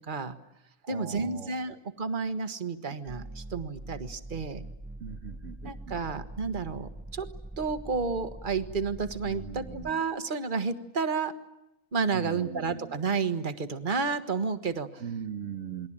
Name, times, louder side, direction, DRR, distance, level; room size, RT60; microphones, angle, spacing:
voice 1, 0.1-0.4 0.9-4.6 5.6-7.3 7.6-11.3 11.9-15.0, right 4 dB, 40° right, 9 dB, 1.7 m, -31 dB
voice 2, 0.8-1.8 5.0-6.1 9.2-10.0 12.1-13.0 15.0-15.9, right 7 dB, 70° right, 6 dB, 1.6 m, -40 dB
sound 1, 3.1-9.9, right 1 dB, 10° right, 0.7 m, -43 dB
28.5 x 21.0 x 8.9 m, 0.90 s
omnidirectional pair, 1.4 m